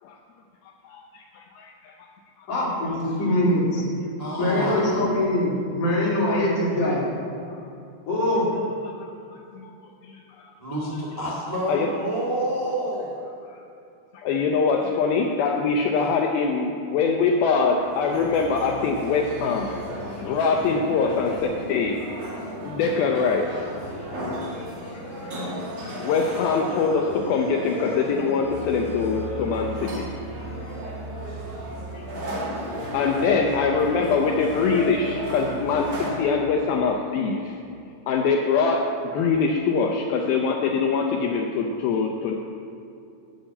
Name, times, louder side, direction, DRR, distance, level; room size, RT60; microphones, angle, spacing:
voice 1, 0.6-2.1 8.8-9.7 10.0-10.5 11.7-11.9 13.5-13.6 14.1-19.7 20.1-22.0 22.6-23.7 24.8-25.4 25.8-30.2 31.9-32.4 32.9-37.6 38.1-42.3, left 5 dB, 85° left, 2 dB, 2.1 m, -24 dB
voice 2, 2.5-3.9 4.4-7.0 8.1-8.5, left 1 dB, 50° left, -6 dB, 4.0 m, -23 dB
voice 3, 4.2-5.0 10.6-13.3 15.9-16.1 33.1-33.6, right 1 dB, 70° right, -5 dB, 0.3 m, -29 dB
sound 1, 17.7-36.2, equal, 45° right, 3.0 m, -34 dB
9.4 x 7.2 x 8.7 m, 2.6 s
omnidirectional pair, 5.2 m